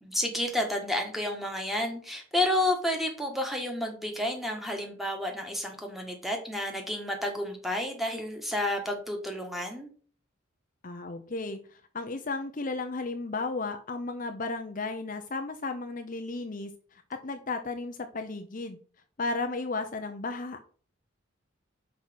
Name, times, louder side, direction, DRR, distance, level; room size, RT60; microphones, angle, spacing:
voice 1, 0.0-9.9, left 1 dB, ahead, 2 dB, 1.5 m, -30 dB
voice 2, 10.8-18.8 19.2-20.7, left 3 dB, 40° left, 6 dB, 0.6 m, -34 dB
5.8 x 4.8 x 6.2 m, 0.43 s
head